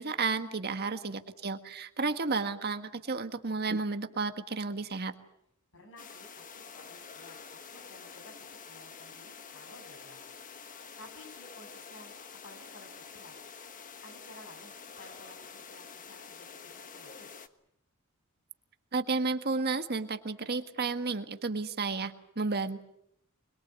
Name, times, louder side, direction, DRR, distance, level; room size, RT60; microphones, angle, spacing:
voice 1, 0.0-5.1 18.9-22.8, right 4 dB, 50° right, 8 dB, 1.5 m, -32 dB
voice 2, 0.9-1.2 5.7-8.3 8.6-10.2 11.0-12.1 12.4-13.3 14.0-17.4, left 2 dB, 65° left, 5 dB, 8.0 m, -54 dB
sound 1, 6.0-17.5, left 6 dB, 40° left, 1.4 m, -48 dB
25.0 x 22.5 x 8.2 m, 0.75 s
head